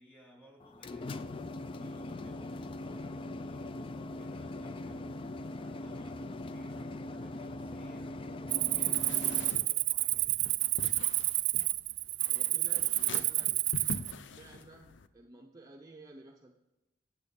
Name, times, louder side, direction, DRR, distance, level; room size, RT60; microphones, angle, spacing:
voice 1, 0.0-8.3 8.6-10.6, right 1 dB, 10° left, -1 dB, 2.9 m, -60 dB
sound 1, 0.6-9.5, left 2 dB, 30° left, 0.3 m, -41 dB
Cricket, 8.5-14.1, right 20 dB, 80° right, 0.3 m, -30 dB
sound 2, 8.9-15.1, left 4 dB, 85° left, 0.5 m, -45 dB
voice 2, 12.2-13.6 14.1-16.5, right 2 dB, 20° right, 1 dB, 0.6 m, -53 dB
10.5 x 7.5 x 5.3 m, 0.97 s
head